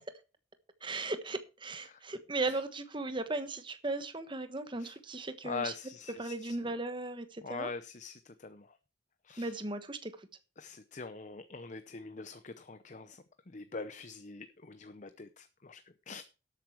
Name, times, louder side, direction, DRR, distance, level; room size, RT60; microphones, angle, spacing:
voice 1, 0.8-5.7 6.2-7.7 9.4-10.1, right 2 dB, 25° right, 1.2 m, -37 dB
voice 2, 5.4-6.6 7.4-8.7 9.2-9.6 10.6-13.2 13.5-16.2, left 4 dB, 45° left, 0.8 m, -43 dB
12.5 x 8.6 x 4.6 m
head